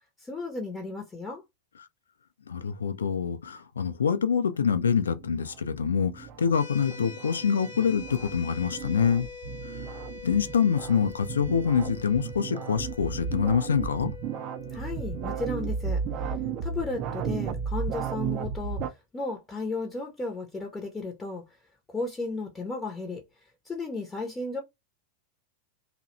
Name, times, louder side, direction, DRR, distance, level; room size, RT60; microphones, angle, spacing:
voice 1, 0.2-1.4 14.7-21.6 21.9-23.2 23.6-24.6, left 3 dB, 15° left, 0.6 m, -34 dB
voice 2, 2.5-9.3 9.6-10.0 10.2-14.1, left 6 dB, 70° left, 0.3 m, -26 dB
sound 1, 5.0-18.9, right 6 dB, 40° right, 0.3 m, -34 dB
sound 2, 6.5-17.7, left 5 dB, 55° left, 0.8 m, -45 dB
2.7 x 2.1 x 2.5 m
figure-of-eight pair, 90°, 0 cm